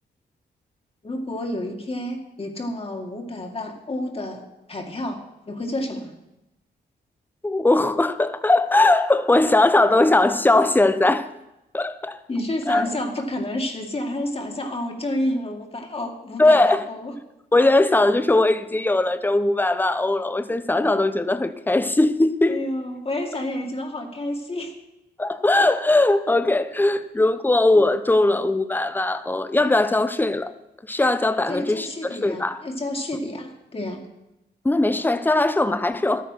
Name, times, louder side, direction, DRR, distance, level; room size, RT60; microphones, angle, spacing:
voice 1, 1.0-6.1 12.3-17.1 22.5-24.7 31.5-34.0, left 1 dB, 30° left, 2.1 m, -30 dB
voice 2, 7.4-11.3 11.7-12.2 12.7-12.9 16.4-16.9 17.5-22.6 25.2-30.5 30.9-32.6 34.6-36.2, left 2 dB, 10° left, 0.7 m, -20 dB
12.5 x 9.3 x 5.9 m
cardioid pair, 100°, 18 cm